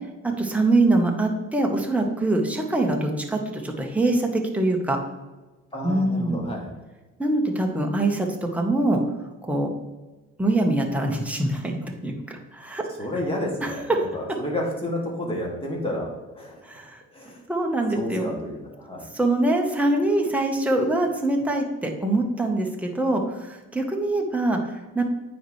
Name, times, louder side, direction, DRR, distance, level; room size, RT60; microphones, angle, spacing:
voice 1, 0.2-5.0 5.8-6.4 7.2-9.0 9.4-9.7 10.4-12.8 13.6-14.1 16.6-17.0 17.5-18.3 19.1-25.0, right 2 dB, 5° right, 1 dB, 1.1 m, -24 dB
voice 2, 5.7-6.7 13.0-16.6 17.1-17.4 17.9-19.1, left 1 dB, 20° left, -2 dB, 2.2 m, -31 dB
9.1 x 4.2 x 3.2 m, 1.2 s
cardioid pair, 90°, 30 cm